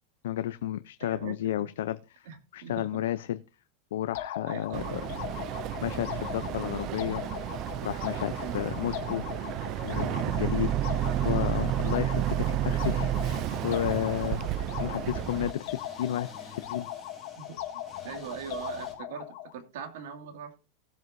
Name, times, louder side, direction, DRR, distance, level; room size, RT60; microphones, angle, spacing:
voice 1, 0.2-2.3 2.5-3.4 3.9-5.0 5.8-7.2 7.8-9.2 9.8-10.7 11.2-14.4 14.8-16.9, left 12 dB, 85° left, 12 dB, 0.5 m, -32 dB
voice 2, 1.0-1.7 2.3-3.0 4.5-5.0 8.4-8.6 17.4-17.6 18.0-20.6, right 7 dB, 75° right, 6 dB, 2.3 m, -41 dB
sound 1, 4.2-19.5, left 12 dB, 60° left, 2.0 m, -39 dB
sound 2, 4.5-19.0, left 3 dB, 5° left, 3.4 m, -53 dB
Boat Water vehicle, 4.7-15.5, right 12 dB, 40° right, 0.4 m, -31 dB
18.0 x 7.7 x 2.6 m, 0.31 s
supercardioid pair, 155°, 0 cm